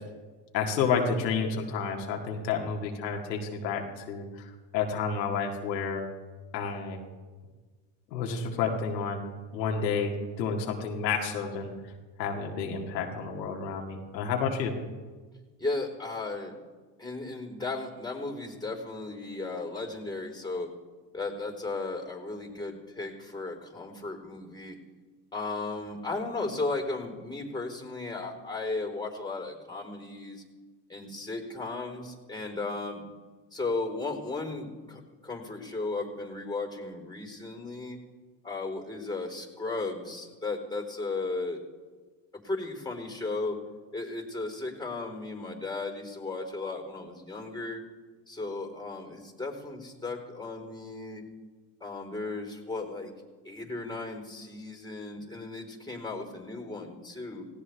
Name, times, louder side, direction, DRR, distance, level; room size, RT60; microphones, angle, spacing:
voice 1, 0.5-6.0 6.5-7.0 8.1-9.2 9.5-11.7 12.2-14.7, left 5 dB, 85° left, 1 dB, 2.1 m, -30 dB
voice 2, 15.6-16.5 17.0-20.7 21.1-24.8 25.3-30.4 30.9-33.0 33.5-38.0 38.4-41.6 42.4-43.6 43.9-47.8 48.3-51.2 51.8-53.1 53.4-57.5, left 3 dB, 10° left, 2 dB, 4.1 m, -35 dB
18.5 x 17.0 x 3.4 m, 1.3 s
hypercardioid pair, 70°, 50 cm